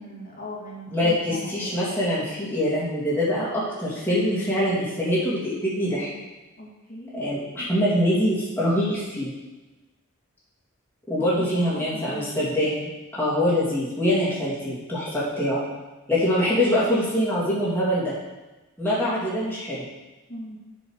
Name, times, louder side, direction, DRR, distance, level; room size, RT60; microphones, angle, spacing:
voice 1, 0.0-1.8 6.6-7.3 11.4-12.5 20.3-20.6, left 1 dB, 40° left, -6 dB, 2.6 m, -39 dB
voice 2, 0.9-6.1 7.1-9.3 11.1-15.6 16.1-18.1 18.8-19.8, equal, 10° left, -8 dB, 2.9 m, -24 dB
8.3 x 6.3 x 6.5 m, 1.1 s
head